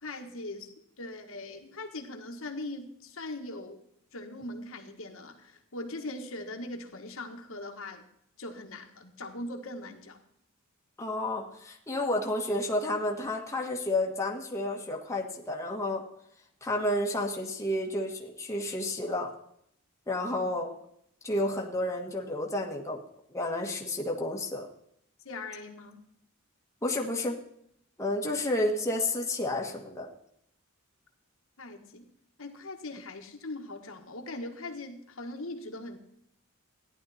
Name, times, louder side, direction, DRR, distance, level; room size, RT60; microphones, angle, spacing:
voice 1, 0.0-3.8 4.1-8.1 8.4-10.2 20.2-20.5 25.2-26.0 31.6-32.0 32.4-36.0, left 2 dB, 65° left, 3 dB, 1.6 m, -40 dB
voice 2, 11.0-16.0 16.6-19.3 20.1-20.7 21.2-23.0 23.3-24.7 26.8-27.4 28.0-30.1, left 1 dB, 15° left, -1 dB, 1.6 m, -31 dB
14.5 x 10.5 x 4.3 m, 0.71 s
head